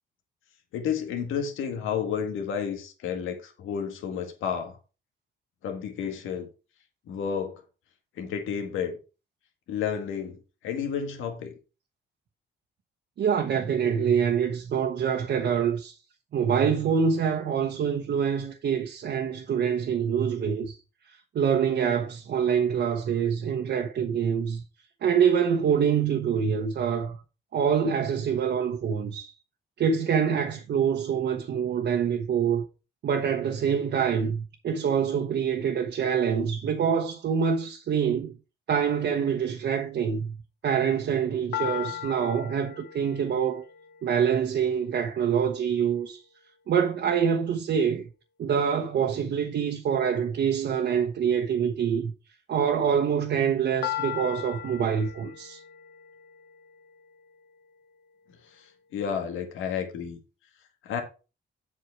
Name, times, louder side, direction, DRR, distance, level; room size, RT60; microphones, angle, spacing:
voice 1, 0.7-4.8 5.6-6.5 7.1-7.6 8.2-9.0 9.7-11.5 58.4-60.2 60.8-61.0, left 7 dB, 85° left, 1.8 m, -31 dB
voice 2, 13.2-15.9 16.3-20.8 21.3-24.6 25.0-27.2 27.5-29.3 29.8-32.6 33.0-38.3 38.7-40.3 40.6-43.6 44.0-46.2 46.7-48.0 48.4-52.1 52.5-55.6, right 7 dB, 60° right, 1.2 m, -25 dB
sound 1, 41.5-45.5 53.8-57.9, left 12 dB, 60° left, 1.0 m, -38 dB
8.0 x 5.7 x 4.7 m
cardioid pair, 90°, 20 cm